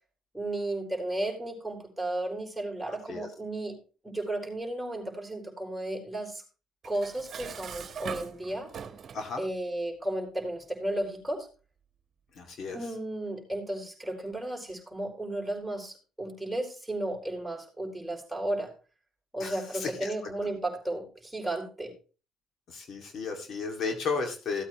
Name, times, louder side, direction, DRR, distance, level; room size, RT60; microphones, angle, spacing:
voice 1, 0.3-3.8 4.0-6.4 6.8-8.7 9.4-11.5 12.7-18.7 19.3-21.9, right 1 dB, ahead, -1 dB, 4.4 m, -34 dB
voice 2, 2.9-3.3 9.1-9.4 12.3-12.9 19.4-20.3 22.7-24.6, left 4 dB, 60° left, 4 dB, 2.3 m, -34 dB
Dishes pots and pans, 6.8-9.3, right 7 dB, 50° right, 1.2 m, -41 dB
16.0 x 8.5 x 3.1 m, 0.35 s
cardioid pair, 90°, 0 cm